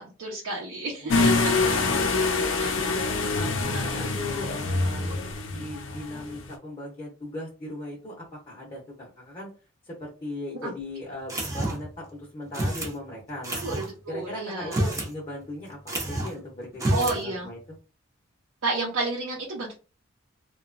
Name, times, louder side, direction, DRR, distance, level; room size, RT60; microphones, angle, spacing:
voice 1, 0.0-1.2 1.7-2.0 2.6-2.9 3.7-4.2 10.6-10.7 13.6-14.8 16.9-17.5 18.6-19.7, right 2 dB, 85° right, -4 dB, 0.7 m, -31 dB
voice 2, 1.0-3.0 3.3-5.2 5.5-9.5 9.8-13.6 14.1-17.8, left 1 dB, 25° left, -4 dB, 0.7 m, -38 dB
sound 1, 1.1-6.5, left 3 dB, 70° left, 0.5 m, -25 dB
sound 2, 11.3-11.9 12.5-12.9 13.4-13.9 14.6-15.1 15.4-15.5 15.9-16.4 16.7-17.2, right 1 dB, 15° right, 0.5 m, -28 dB
2.8 x 2.2 x 2.5 m, 0.34 s
head